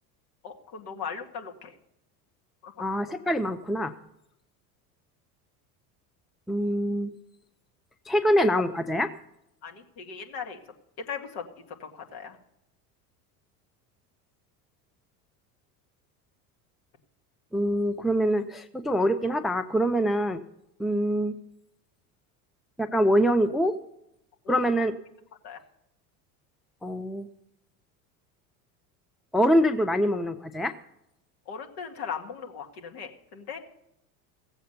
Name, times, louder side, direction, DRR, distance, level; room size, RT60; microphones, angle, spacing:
voice 1, 0.4-1.8 2.6-2.9 9.6-10.6 11.0-12.4 24.4-24.9 25.4-25.6 31.5-33.6, left 6 dB, 60° left, 3 dB, 2.2 m, -38 dB
voice 2, 2.8-3.9 6.5-7.1 8.1-9.1 17.5-20.4 20.8-21.3 22.8-23.8 24.5-24.9 26.8-27.3 29.3-30.7, equal, ahead, 11 dB, 0.5 m, -24 dB
16.5 x 7.7 x 6.7 m, 0.82 s
hypercardioid pair, 80°, 46 cm